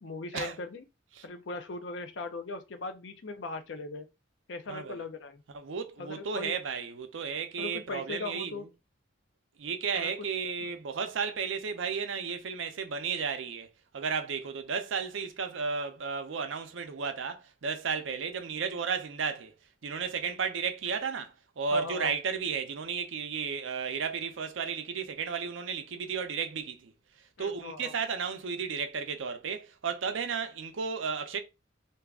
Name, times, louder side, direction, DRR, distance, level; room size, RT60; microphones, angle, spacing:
voice 1, 0.0-0.8 1.2-4.1 4.5-5.4 6.0-6.6 7.6-8.7 9.9-10.1 10.6-10.8 20.3-20.4 21.7-22.1 27.4-27.9, left 3 dB, 70° left, 0.6 m, -39 dB
voice 2, 4.7-5.0 5.5-8.7 9.6-19.5 19.8-26.9 27.4-31.4, right 6 dB, 90° right, 0.5 m, -33 dB
2.6 x 2.4 x 3.5 m
head